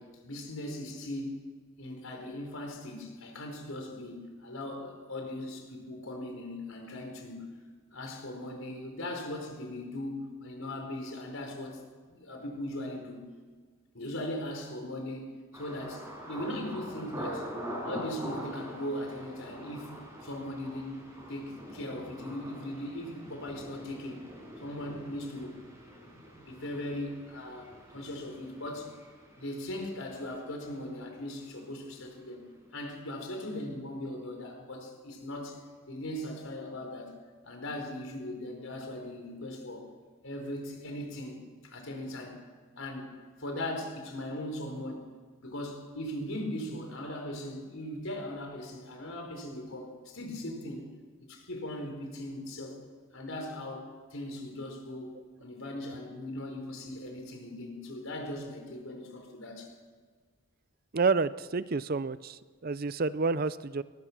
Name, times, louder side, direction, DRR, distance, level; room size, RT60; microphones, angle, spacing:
voice 1, 0.0-1.4 1.8-7.5 7.9-11.8 12.1-13.2 13.9-15.3 15.5-17.5 17.8-21.0 21.3-24.2 24.6-25.6 26.0-29.0 29.4-32.4 32.7-37.2 37.4-39.9 40.2-42.4 42.8-43.1 43.4-45.1 45.4-50.8 51.3-52.8 53.1-59.7, left 1 dB, 70° left, 3 dB, 4.8 m, -39 dB
Thunder, 15.5-31.3 31.5-32.2 32.6-32.9, equal, 10° right, 5.4 m, -44 dB
voice 2, 60.9-63.8, right 4 dB, 45° right, 16 dB, 0.5 m, -29 dB
21.5 x 20.0 x 6.1 m, 1.5 s
head